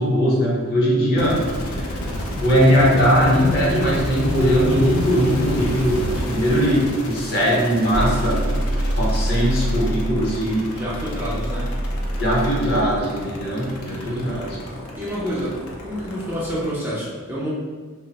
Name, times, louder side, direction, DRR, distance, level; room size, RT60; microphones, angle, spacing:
voice 1, 0.0-1.9 2.4-8.5 8.9-10.7 12.2-14.6, equal, 45° left, -5 dB, 0.8 m, -20 dB
sound 1, 1.2-16.7, left 1 dB, 75° left, 0.5 m, -30 dB
sound 2, 7.9-13.0, right 1 dB, 65° right, 0.5 m, -25 dB
voice 2, 10.7-11.7 14.1-14.4 15.0-15.6 15.8-17.5, equal, 10° right, -7 dB, 0.4 m, -28 dB
2.4 x 2.1 x 3.9 m, 1.5 s
head